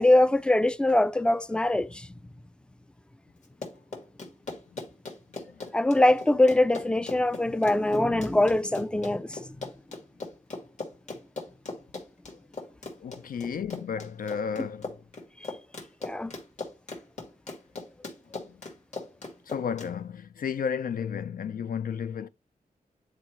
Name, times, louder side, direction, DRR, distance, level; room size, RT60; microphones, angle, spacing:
voice 1, 0.0-2.1 5.7-9.4 16.0-16.3, left 1 dB, 5° left, 0.3 m, -23 dB
Run, 3.4-19.9, left 3 dB, 50° left, 1.8 m, -39 dB
voice 2, 13.0-15.0 18.3-18.6 19.5-22.3, left 7 dB, 70° left, 0.5 m, -33 dB
9.7 x 4.2 x 3.1 m
wide cardioid pair, 160°, 15 cm